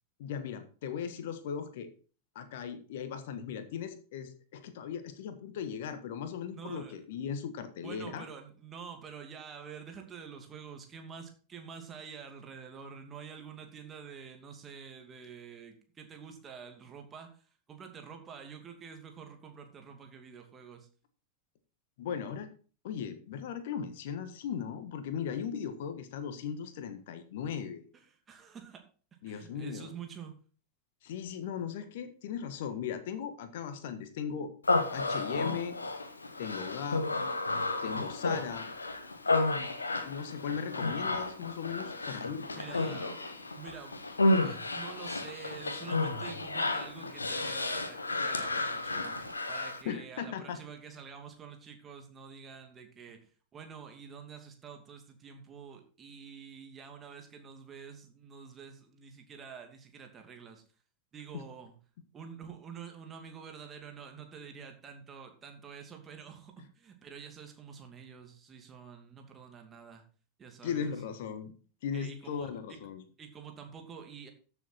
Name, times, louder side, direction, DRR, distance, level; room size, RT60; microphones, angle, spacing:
voice 1, 0.2-1.9 2.3-8.2 22.0-22.5 22.8-27.8 29.2-29.9 31.0-34.5 34.9-35.8 36.4-37.0 37.8-38.7 40.0-42.8 49.8-50.6 61.3-61.4 70.6-71.5 71.8-73.0, left 7 dB, 55° left, 10 dB, 1.5 m, -38 dB
voice 2, 6.5-7.0 7.8-20.9 27.9-28.9 29.2-30.4 42.6-60.6 61.1-61.8 62.1-70.0 70.4-71.0 71.9-72.8 73.2-74.3, right 6 dB, 25° right, 4 dB, 2.6 m, -48 dB
Human voice, 34.6-49.8, left 2 dB, 75° left, 1.4 m, -32 dB
sound 1, 47.6-49.5 50.1-50.2 50.8-51.0, right 1 dB, 85° right, 1.6 m, -48 dB
14.0 x 7.1 x 4.3 m, 0.39 s
figure-of-eight pair, 90°, 0 cm